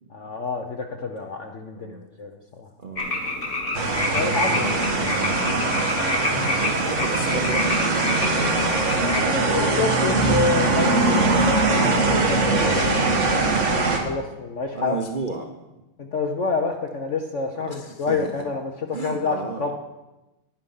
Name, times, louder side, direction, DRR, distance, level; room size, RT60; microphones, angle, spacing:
voice 1, 0.1-2.7 4.1-4.7 6.2-6.7 9.1-13.4 14.0-15.0 16.0-19.7, left 4 dB, 60° left, 3 dB, 0.7 m, -28 dB
voice 2, 2.8-3.1 4.4-5.7 6.3-9.2 13.3-13.7 14.7-15.5 17.7-18.4 18.9-19.7, right 3 dB, 70° right, 3 dB, 0.4 m, -33 dB
sound 1, 3.0-9.2, left 2 dB, 30° left, 1.4 m, -28 dB
sound 2, 3.7-14.0, right 3 dB, 40° right, 1.5 m, -22 dB
10.0 x 9.9 x 5.5 m, 1.0 s
omnidirectional pair, 2.3 m